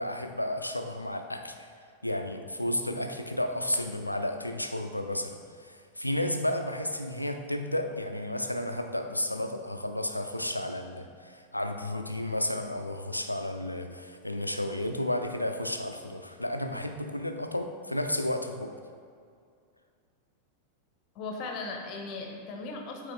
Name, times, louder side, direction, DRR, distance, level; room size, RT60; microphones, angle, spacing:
voice 1, 0.0-1.7 2.0-18.7, left 1 dB, 85° left, 6 dB, 0.4 m, -32 dB
voice 2, 21.1-23.1, left 3 dB, 40° left, 2 dB, 0.8 m, -37 dB
8.8 x 3.3 x 3.6 m, 2.2 s
figure-of-eight pair, 90°, 0 cm